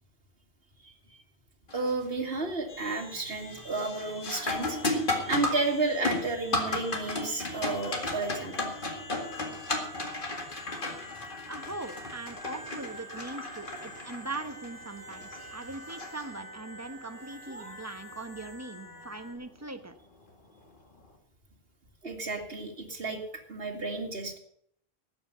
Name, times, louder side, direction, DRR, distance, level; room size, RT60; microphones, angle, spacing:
sound 1, 1.7-2.1 2.5-2.9 3.3-16.8 19.3-19.4 20.2-20.5, left 2 dB, 50° left, 2.2 m, -34 dB
voice 1, 1.7-4.8 5.3-8.7 17.5-17.8 22.0-23.2 23.5-24.4, right 3 dB, 65° right, 3 dB, 2.5 m, -32 dB
sound 2, 2.7-19.4, left 1 dB, 15° left, 1.7 m, -48 dB
voice 2, 11.5-19.9, right 2 dB, 15° right, 8 dB, 1.1 m, -41 dB
13.0 x 8.8 x 6.7 m, 0.66 s
omnidirectional pair, 1.1 m